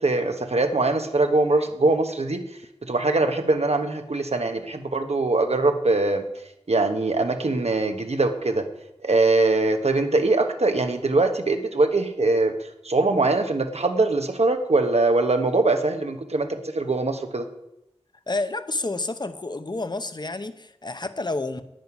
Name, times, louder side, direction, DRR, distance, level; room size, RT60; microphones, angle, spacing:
voice 1, 0.0-2.4 2.8-6.2 6.7-8.6 9.0-12.5 12.8-17.4, right 2 dB, 70° right, 1.2 m, -22 dB
voice 2, 18.3-21.6, left 2 dB, 40° left, 0.8 m, -29 dB
9.3 x 9.2 x 6.0 m
wide cardioid pair, 55°, 11 cm